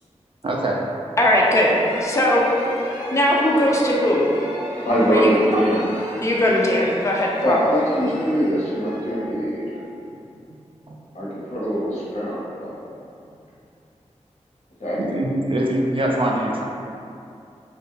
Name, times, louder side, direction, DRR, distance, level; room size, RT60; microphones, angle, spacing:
voice 1, 0.4-0.8 5.5-5.6 10.9-11.1 15.0-16.6, right 1 dB, 45° right, -2 dB, 0.4 m, -23 dB
voice 2, 1.2-1.7 2.0-2.4 3.1-4.2 5.1-5.3 6.2-7.6, left 1 dB, 25° left, -3 dB, 0.4 m, -19 dB
sound 1, 1.3-10.0, equal, 20° right, 0.9 m, -34 dB
voice 3, 4.9-5.8 7.4-9.8 11.1-12.8 14.8-15.0, equal, 70° left, -9 dB, 0.8 m, -22 dB
2.3 x 2.0 x 3.0 m, 2.6 s
cardioid pair, 45°, 12 cm